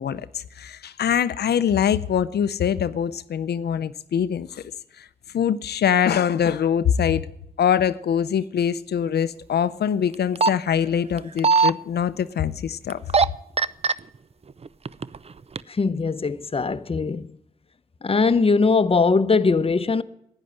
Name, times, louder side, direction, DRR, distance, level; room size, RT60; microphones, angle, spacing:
voice 1, 0.0-4.6 5.0-5.1 5.3-7.3 7.6-13.0, left 8 dB, 90° left, 0.5 m, -23 dB
sound 1, 10.1-10.5 11.2-11.7 12.9-13.2 13.6-13.9 14.7-15.2 15.6-15.7, right 5 dB, 40° right, 0.5 m, -18 dB
voice 2, 15.7-17.4 18.0-20.0, left 4 dB, 35° left, 0.7 m, -21 dB
11.0 x 9.9 x 7.8 m
cardioid pair, 65°, 16 cm